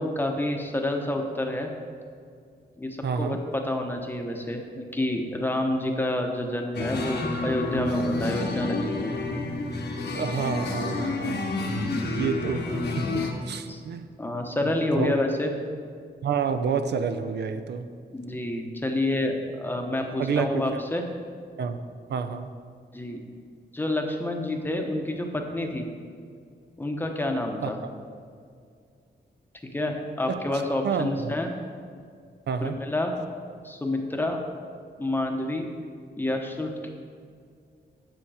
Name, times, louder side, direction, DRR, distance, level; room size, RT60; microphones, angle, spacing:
voice 1, 0.0-1.7 2.8-9.1 13.7-13.8 14.2-15.5 18.1-21.0 22.9-23.2 23.7-25.9 26.8-27.8 29.7-31.5 32.6-33.1 33.6-34.4 35.0-35.7 36.2-36.9, left 1 dB, 10° left, 2 dB, 0.8 m, -28 dB
voice 2, 3.0-3.4 10.1-11.5 12.0-14.1 14.9-15.1 16.2-17.9 20.2-20.8 21.6-21.8 22.1-22.5 27.6-27.7 30.3-30.4 30.8-31.3 32.5-32.8, right 6 dB, 70° right, 9 dB, 0.5 m, -29 dB
sound 1, 6.7-13.3, left 2 dB, 70° left, 1.1 m, -29 dB
8.9 x 7.1 x 4.8 m, 2.2 s
wide cardioid pair, 175°, 18 cm